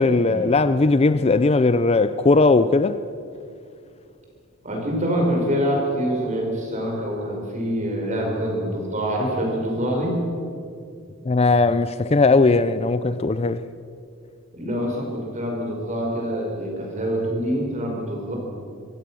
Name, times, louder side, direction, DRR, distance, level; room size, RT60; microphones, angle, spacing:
voice 1, 0.0-3.0 11.3-13.6, left 3 dB, 30° left, 0.5 m, -18 dB
voice 2, 4.6-10.2 14.5-18.4, equal, 35° right, 5.2 m, -25 dB
26.0 x 16.0 x 6.3 m
head